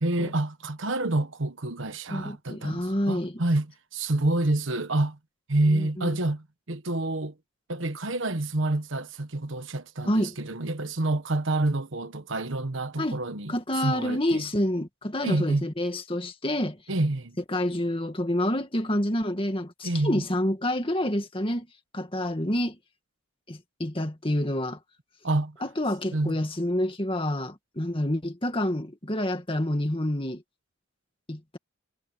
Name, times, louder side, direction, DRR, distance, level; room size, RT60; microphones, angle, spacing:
voice 1, 0.0-5.2 5.5-7.3 7.7-13.5 13.8-14.5 15.2-15.7 16.9-17.4 19.8-20.2 25.2-25.6 26.1-26.3, right 2 dB, 70° right, 1.3 m, -28 dB
voice 2, 2.1-3.4 5.7-6.2 10.1-10.4 13.0-13.2 13.5-16.8 17.5-21.7 21.9-22.8 23.5-24.8 25.6-30.4 31.3-31.6, left 1 dB, 25° left, 2.2 m, -28 dB
head